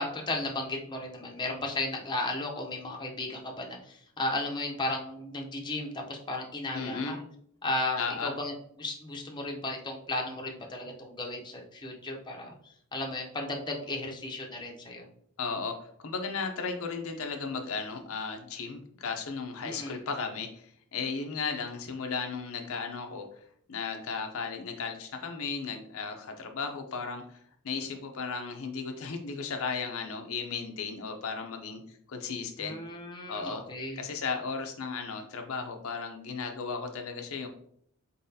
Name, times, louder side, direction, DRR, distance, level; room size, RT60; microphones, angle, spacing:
voice 1, 0.0-7.2 7.6-8.5 8.8-12.5 12.9-15.1 19.6-20.0 32.6-34.0, left 2 dB, 20° left, 0 dB, 0.6 m, -34 dB
voice 2, 6.7-7.2 8.0-8.3 15.4-15.8 16.0-23.3 23.7-27.4 27.6-31.8 32.1-32.8 33.3-33.6 33.9-37.5, left 5 dB, 70° left, 4 dB, 0.6 m, -35 dB
4.1 x 3.9 x 2.7 m, 0.65 s
head